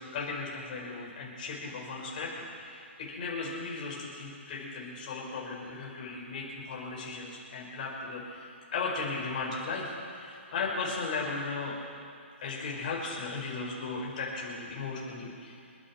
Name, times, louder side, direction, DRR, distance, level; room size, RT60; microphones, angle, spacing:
voice 1, 0.0-11.8 12.4-15.6, left 4 dB, 40° left, -3 dB, 5.2 m, -36 dB
29.5 x 10.5 x 4.5 m, 2.5 s
hypercardioid pair, 165°, 7 cm